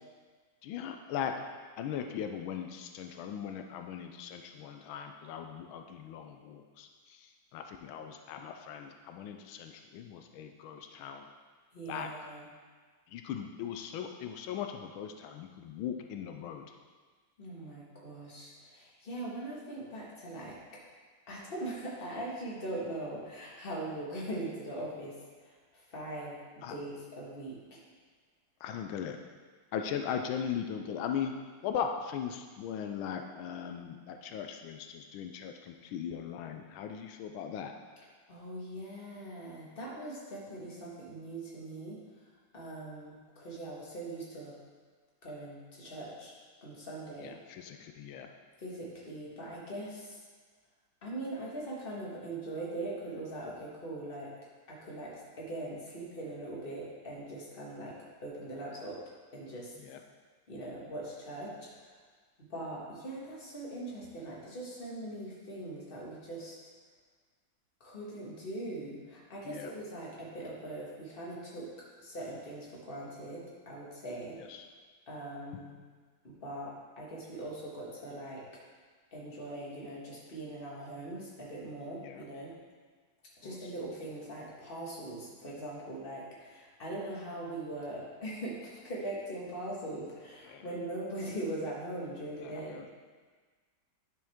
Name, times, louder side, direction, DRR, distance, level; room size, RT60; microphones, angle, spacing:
voice 1, 0.6-1.3 1.8-11.3 11.9-12.3 13.1-16.7 26.6-26.7 28.6-29.2 29.7-31.3 31.6-37.7 47.2-48.3 59.8-60.0 69.4-69.7 74.4-74.7 82.0-82.2 83.4-83.7 90.4-90.7 92.4-92.9, left 8 dB, 85° left, 5 dB, 1.4 m, -39 dB
voice 2, 11.7-12.5 17.4-20.6 21.3-27.8 38.3-42.3 42.5-44.6 45.2-46.3 46.6-47.3 48.6-50.2 51.0-54.3 54.7-58.0 58.2-59.0 59.3-59.7 60.5-62.0 62.4-66.6 67.8-71.7 72.0-74.4 75.1-75.7 76.2-78.4 79.1-82.5 83.4-92.8, right 1 dB, 30° left, -5 dB, 1.8 m, -41 dB
10.0 x 6.2 x 3.6 m, 1.5 s
omnidirectional pair, 2.2 m